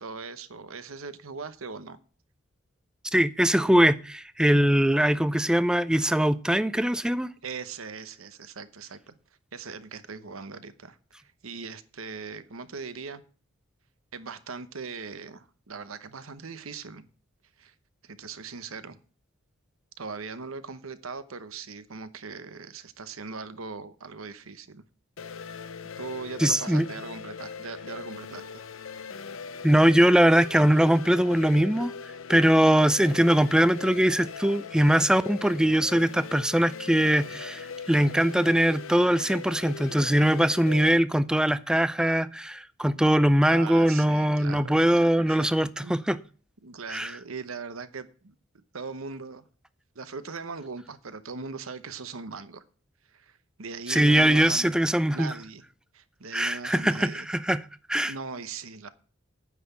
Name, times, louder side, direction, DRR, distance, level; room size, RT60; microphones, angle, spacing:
voice 1, 0.0-2.0 7.4-9.1 9.5-13.2 14.1-17.0 17.6-17.7 18.0-19.0 20.0-24.8 26.0-28.6 43.5-45.5 45.8-45.9 46.6-48.3 48.7-49.4 49.9-52.6 53.1-54.7 55.1-55.6 55.9-57.3 58.1-58.9, right 4 dB, 85° right, 1.0 m, -40 dB
voice 2, 3.1-7.3 26.4-26.9 29.6-31.9 32.3-46.2 46.9-47.1 53.9-55.3 56.3-57.6 57.9-58.1, right 1 dB, 5° right, 0.4 m, -22 dB
sound 1, 25.2-40.9, left 5 dB, 75° left, 0.7 m, -40 dB
9.4 x 5.9 x 8.5 m
head